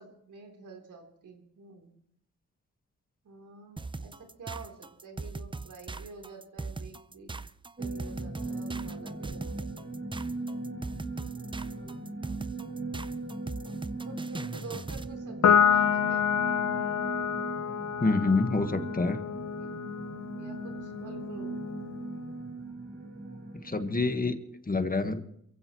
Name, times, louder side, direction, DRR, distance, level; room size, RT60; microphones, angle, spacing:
voice 1, 0.0-1.9 3.2-7.3 7.8-9.7 11.3-12.1 14.0-16.3 19.6-19.7 20.4-21.5, right 4 dB, 90° right, 3 dB, 3.8 m, -48 dB
sound 1, 3.8-15.1, right 3 dB, 15° right, 0.5 m, -39 dB
sound 2, 7.8-24.3, right 2 dB, 30° right, 4.2 m, -39 dB
Piano, 15.4-22.1, left 8 dB, 65° left, 0.8 m, -28 dB
voice 2, 18.0-19.2 23.6-24.3 24.6-25.2, left 3 dB, 30° left, 8 dB, 1.5 m, -26 dB
28.0 x 15.5 x 3.1 m, 0.71 s
cardioid pair, 85°, 30 cm